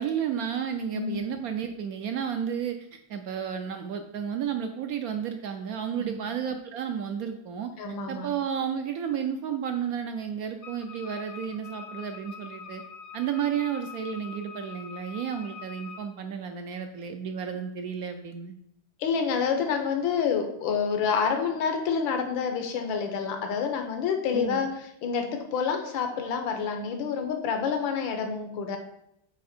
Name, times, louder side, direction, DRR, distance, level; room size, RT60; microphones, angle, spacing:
voice 1, 0.0-7.7 8.1-12.8 13.1-18.5 24.3-24.7, right 8 dB, 80° right, 6 dB, 0.8 m, -32 dB
voice 2, 7.8-8.3 19.0-24.7 25.0-28.8, left 6 dB, 85° left, 5 dB, 1.6 m, -28 dB
Wind instrument woodwind instrument, 10.6-16.1, left 6 dB, 60° left, 0.9 m, -44 dB
8.6 x 3.3 x 4.2 m, 0.77 s
omnidirectional pair, 2.1 m